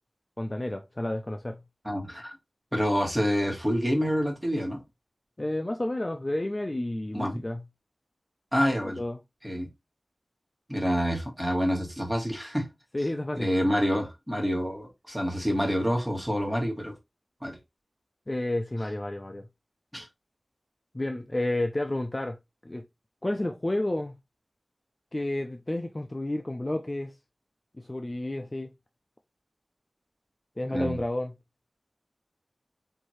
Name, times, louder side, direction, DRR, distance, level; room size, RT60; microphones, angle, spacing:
voice 1, 0.4-1.6 5.4-7.6 8.8-9.2 12.9-13.5 18.3-19.5 20.9-22.4 22.6-22.8 23.2-24.1 25.1-27.1 27.8-28.7 30.6-31.3, left 1 dB, 30° left, 0.4 m, -31 dB
voice 2, 1.8-2.4 2.7-4.8 7.1-7.4 8.5-9.0 9.4-9.7 10.7-12.7 13.3-16.9 17.4-17.6 19.9-20.1 30.7-31.0, equal, 5° right, 1.5 m, -27 dB
4.5 x 2.7 x 3.1 m
wide cardioid pair, 70°, 0 cm